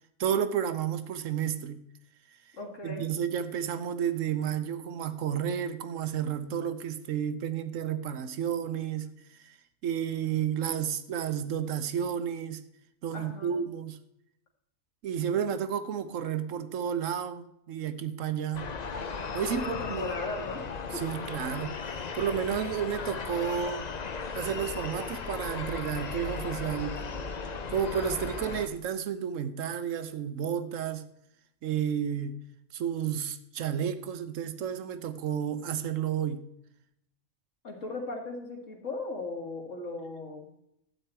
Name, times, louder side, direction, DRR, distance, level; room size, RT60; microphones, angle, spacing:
voice 1, 0.2-1.8 2.8-9.1 9.4-9.6 9.8-12.6 13.0-14.0 15.0-18.7 19.3-20.1 20.9-21.8 22.1-23.9 24.3-27.0 27.7-31.1 31.6-32.3 32.7-36.4, right 8 dB, 65° right, 1.1 m, -31 dB
voice 2, 2.6-3.0 13.1-13.5 19.4-20.7 20.9-21.0 37.6-40.5, left 2 dB, 60° left, 2.3 m, -37 dB
sound 1, 18.5-28.7, left 5 dB, 45° left, 0.6 m, -36 dB
12.0 x 8.4 x 4.4 m
omnidirectional pair, 1.5 m